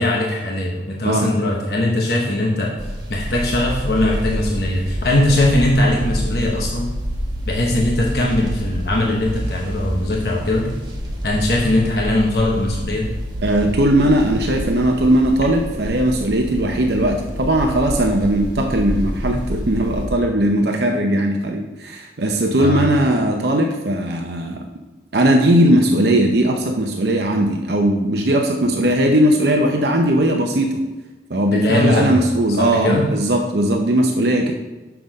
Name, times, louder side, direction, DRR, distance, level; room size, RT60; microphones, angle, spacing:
voice 1, 0.0-2.8 3.1-6.9 7.5-10.7 11.2-13.1 22.6-22.9 31.5-32.2 32.6-33.1, left 1 dB, 60° left, -1 dB, 1.0 m, -20 dB
sound 1, 2.8-20.1, equal, 25° right, 1.1 m, -28 dB
voice 2, 13.4-24.6 25.1-30.8 31.3-34.5, right 1 dB, 65° right, 2 dB, 0.7 m, -18 dB
6.8 x 5.9 x 5.2 m, 1.1 s
head